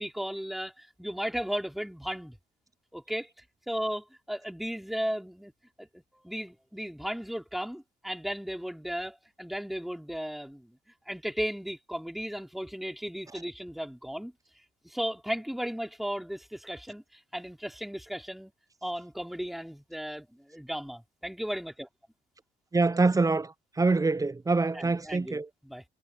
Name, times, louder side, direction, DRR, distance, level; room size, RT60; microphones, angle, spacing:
voice 1, 0.0-2.4 2.9-3.3 3.7-5.5 5.8-10.8 11.1-14.3 14.8-18.5 18.8-21.9 24.7-25.8, equal, ahead, 3.5 m, -35 dB
voice 2, 22.7-23.5 23.8-25.5, right 3 dB, 15° right, 0.6 m, -25 dB
supercardioid pair, 65°, 20 cm